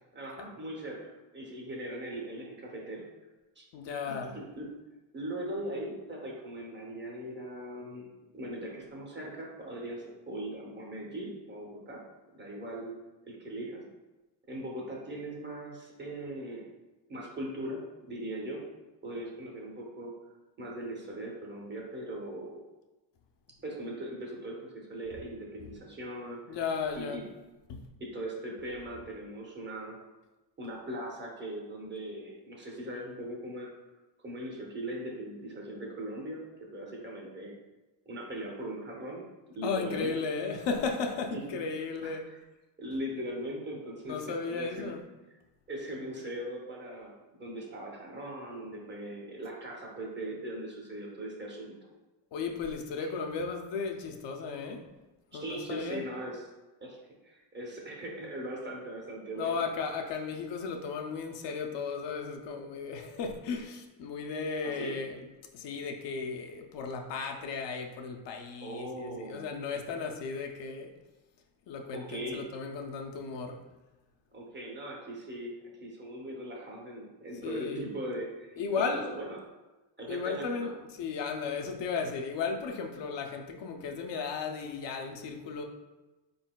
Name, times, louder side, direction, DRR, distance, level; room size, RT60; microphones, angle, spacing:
voice 1, 0.1-1.0 1.3-3.0 3.6-3.7 4.1-4.7 5.1-8.1 8.3-12.0 12.4-12.9 13.3-13.8 14.5-16.7 17.1-18.6 19.0-20.1 20.6-22.6 23.6-26.4 26.9-27.2 28.0-30.0 30.6-33.7 34.2-36.4 36.7-37.5 38.1-39.2 39.6-40.1 41.3-41.6 42.0-42.4 42.8-45.0 45.7-51.7 53.0-53.1 55.3-56.4 56.8-57.0 57.2-59.6 64.6-65.0 68.6-69.5 71.9-72.4 74.3-75.6 75.8-79.4 80.0-80.7, right 1 dB, 25° right, -2 dB, 0.7 m, -39 dB
voice 2, 3.7-4.4 25.6-25.7 26.5-27.2 27.7-27.8 39.6-42.2 44.1-45.0 52.3-54.9 55.3-56.0 59.4-65.2 65.5-70.9 71.7-73.6 77.4-77.9 78.6-79.0 80.1-80.7 81.0-85.6, left 5 dB, 65° left, 3 dB, 0.6 m, -35 dB
4.2 x 4.0 x 2.2 m, 1.1 s
cardioid pair, 155°, 46 cm